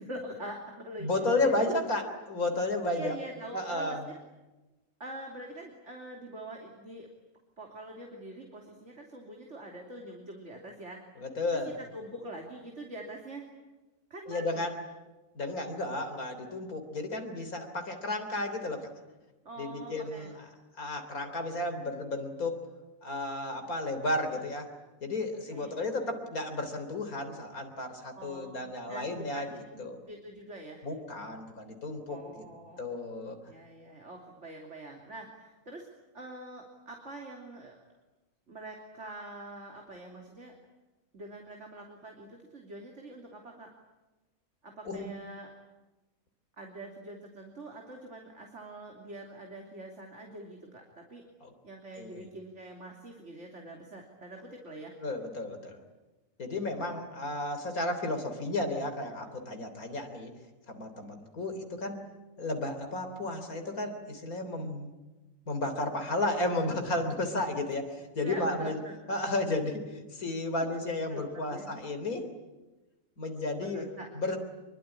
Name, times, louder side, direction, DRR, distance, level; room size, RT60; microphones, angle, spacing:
voice 1, 0.0-1.7 2.9-4.2 5.0-7.1 7.6-11.0 11.5-13.5 14.1-14.7 19.4-20.4 25.5-25.8 28.1-30.9 32.1-32.8 33.5-35.9 36.1-37.8 38.5-40.5 41.1-43.7 44.6-45.5 46.6-51.2 51.6-54.9 56.4-56.7 59.5-59.7 68.2-68.9 71.1-71.8 73.6-74.2, right 1 dB, 55° right, 1 dB, 3.4 m, -44 dB
voice 2, 1.0-3.2 3.5-4.1 11.2-11.8 14.3-14.8 15.4-18.9 19.6-20.3 20.8-22.7 23.0-24.7 25.0-29.5 29.8-30.0 30.8-32.4 32.8-33.4 44.9-45.1 51.4-51.5 52.0-52.2 55.0-55.8 56.4-60.3 60.7-62.0 62.4-64.9 65.5-68.8 69.1-72.3 73.2-73.8 74.1-74.4, left 2 dB, 85° left, 6 dB, 4.0 m, -33 dB
25.5 x 23.5 x 10.0 m, 1.1 s
omnidirectional pair, 1.5 m